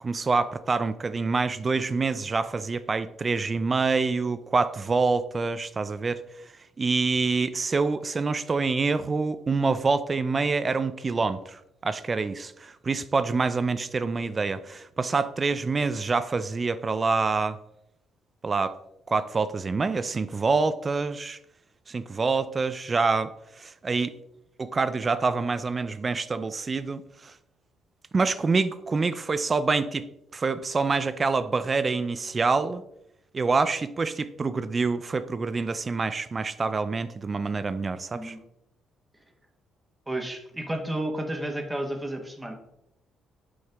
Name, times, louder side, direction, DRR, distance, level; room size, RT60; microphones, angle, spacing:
voice 1, 0.0-6.2 6.8-17.6 18.4-18.7 19.1-21.4 21.9-23.3 23.6-24.1 24.6-27.3 28.1-32.8 33.3-38.4, right 4 dB, 35° right, 13 dB, 0.4 m, -26 dB
voice 2, 40.1-42.5, right 1 dB, 15° right, 3 dB, 1.3 m, -32 dB
6.5 x 5.4 x 3.5 m, 0.80 s
supercardioid pair, 70°, 0 cm